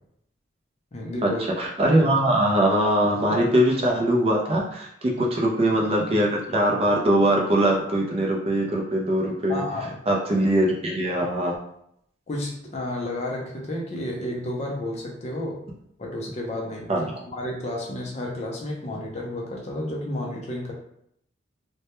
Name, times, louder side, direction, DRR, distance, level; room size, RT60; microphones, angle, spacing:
voice 1, 0.9-1.4 5.2-5.3 9.5-10.0 12.3-15.6 16.0-20.7, left 1 dB, 35° left, -1 dB, 0.4 m, -31 dB
voice 2, 1.6-9.6 10.1-11.5 16.9-17.2, right 1 dB, 30° right, -1 dB, 0.3 m, -22 dB
2.1 x 2.1 x 2.9 m, 0.72 s
head